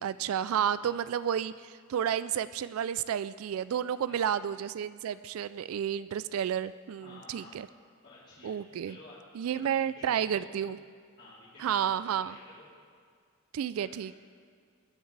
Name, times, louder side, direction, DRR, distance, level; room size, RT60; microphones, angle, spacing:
voice 1, 0.0-7.7 8.4-9.0 9.3-10.8 11.6-12.4 13.5-14.1, right 9 dB, 80° right, 15 dB, 0.3 m, -31 dB
voice 2, 7.0-7.6 8.0-8.5 8.8-9.4 9.9-10.5 11.2-12.6 13.8-14.1, left 2 dB, 45° left, -13 dB, 3.5 m, -52 dB
20.5 x 10.0 x 3.3 m, 2.1 s
head